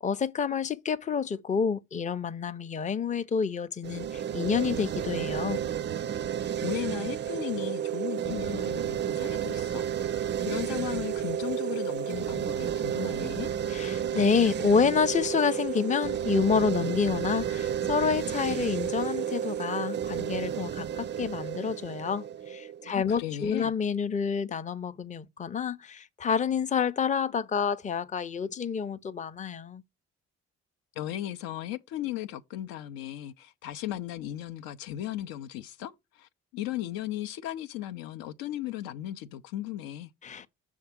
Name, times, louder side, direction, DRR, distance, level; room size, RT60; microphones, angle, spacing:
voice 1, 0.0-5.6 13.7-29.8 40.2-40.5, left 6 dB, 20° left, 0.5 m, -28 dB
sound 1, 3.8-22.9, right 9 dB, 30° right, 0.4 m, -31 dB
voice 2, 6.6-9.8 10.1-10.2 10.4-13.5 22.8-23.7 31.0-40.1, left 13 dB, 70° left, 0.6 m, -36 dB
6.5 x 3.6 x 5.7 m
hypercardioid pair, 45°, 36 cm